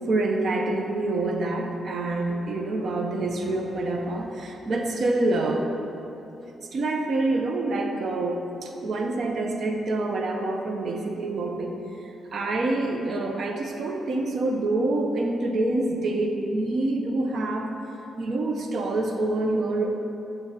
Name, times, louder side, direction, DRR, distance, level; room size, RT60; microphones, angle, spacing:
voice 1, 0.1-5.7 6.6-17.7 18.2-20.0, right 2 dB, 60° right, 2 dB, 0.7 m, -26 dB
9.5 x 3.4 x 5.8 m, 2.8 s
cardioid pair, 85°, 0 cm